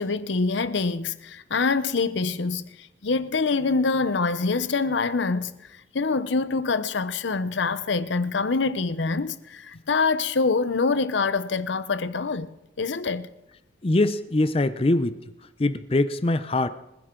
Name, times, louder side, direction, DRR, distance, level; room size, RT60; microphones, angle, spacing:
voice 1, 0.0-5.5 5.9-13.3, left 4 dB, 75° left, 0.7 m, -25 dB
voice 2, 13.8-15.2 15.6-16.7, left 2 dB, 30° left, 0.5 m, -22 dB
25.5 x 10.5 x 3.8 m
head